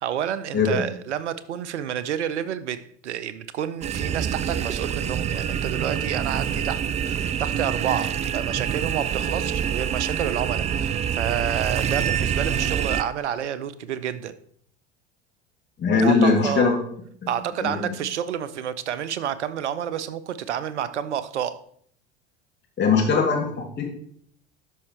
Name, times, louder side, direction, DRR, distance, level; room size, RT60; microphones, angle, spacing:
voice 1, 0.0-14.3 16.0-16.7 17.3-21.6, right 9 dB, 75° right, 15 dB, 0.7 m, -29 dB
voice 2, 0.5-0.9 15.8-16.8 17.2-17.3 17.6-17.9 22.8-23.9, left 4 dB, 30° left, 0 dB, 2.8 m, -21 dB
sound 1, 3.8-13.0, right 8 dB, 20° right, 0.4 m, -26 dB
12.5 x 5.5 x 3.3 m, 0.64 s
figure-of-eight pair, 70°, 34 cm